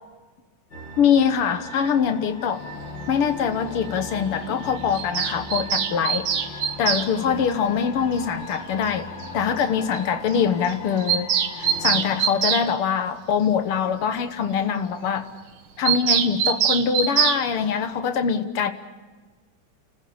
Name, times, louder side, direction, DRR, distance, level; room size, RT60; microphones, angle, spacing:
sound 1, 0.7-12.0, left 2 dB, 55° left, 3.6 m, -38 dB
voice 1, 1.0-2.6 3.1-6.3 6.8-9.1 9.3-15.3 15.8-18.7, left 7 dB, 80° left, 10 dB, 2.2 m, -23 dB
Bird vocalization bird call bird song, 4.9-7.1 8.5-8.6 8.9-9.0 9.2-9.3 9.6-9.7 9.9-10.0 10.3-10.4 10.7-12.7 15.8-17.4, right 8 dB, 70° right, 1.9 m, -23 dB
29.5 x 14.5 x 8.7 m, 1.3 s
omnidirectional pair, 2.4 m